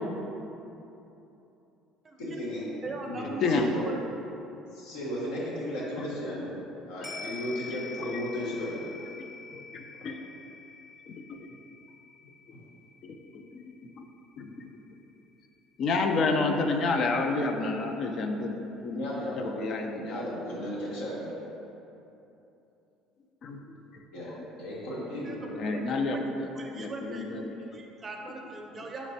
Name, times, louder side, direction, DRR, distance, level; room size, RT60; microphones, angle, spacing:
voice 1, 2.2-2.6 3.0-3.9 4.7-6.5 6.9-8.7 12.5-12.6 18.9-21.3 24.1-24.3 24.6-25.5, equal, 80° left, -6 dB, 1.0 m, -35 dB
voice 2, 2.8-3.5 3.8-4.0 25.2-25.4 25.7-29.1, right 3 dB, 30° right, 1 dB, 0.5 m, -40 dB
sound 1, 7.0-15.6 15.9-16.0, left 4 dB, 20° left, 0.7 m, -46 dB
voice 3, 9.5-10.2 11.1-11.4 13.0-14.1 14.4-14.7 15.8-19.0 19.4-20.2 23.4-23.8 25.6-26.5 26.8-27.4, left 3 dB, 55° left, 4 dB, 0.3 m, -30 dB
4.2 x 3.0 x 2.7 m, 2.9 s
supercardioid pair, 80°, 0 cm